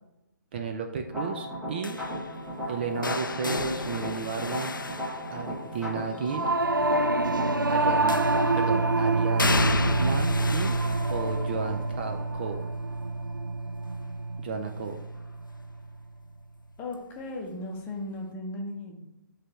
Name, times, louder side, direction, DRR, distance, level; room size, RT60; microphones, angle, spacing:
voice 1, 0.5-2.0 2.7-4.7 5.3-6.5 7.7-8.2 8.5-9.6 10.0-10.8 11.1-12.6 14.4-15.0, right 5 dB, 30° right, 4 dB, 0.4 m, -33 dB
sound 1, 1.1-8.5, equal, 5° right, 1.1 m, -36 dB
sound 2, 1.8-5.9 8.1-8.7 9.4-15.2 15.5-16.0 17.2-17.3, left 3 dB, 80° left, 0.4 m, -33 dB
Singing / Musical instrument, 6.3-15.8, right 2 dB, 90° right, 0.4 m, -27 dB
voice 2, 16.8-19.0, left 2 dB, 15° left, 0 dB, 0.9 m, -36 dB
9.7 x 3.3 x 2.9 m, 0.91 s
figure-of-eight pair, 135°, 11 cm